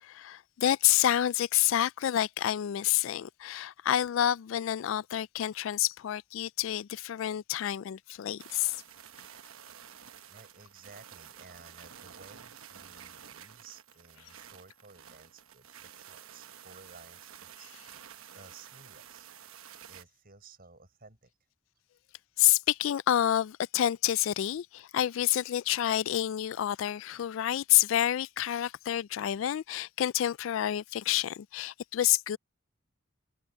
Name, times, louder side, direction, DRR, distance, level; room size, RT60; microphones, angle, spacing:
voice 1, 0.0-8.8 22.4-32.4, left 12 dB, 65° left, 0.3 m, -28 dB
sound 1, 8.4-20.0, right 9 dB, 80° right, 1.0 m, -51 dB
voice 2, 10.3-17.8 18.3-19.3 19.9-21.3, right 4 dB, 45° right, 6.2 m, -55 dB
head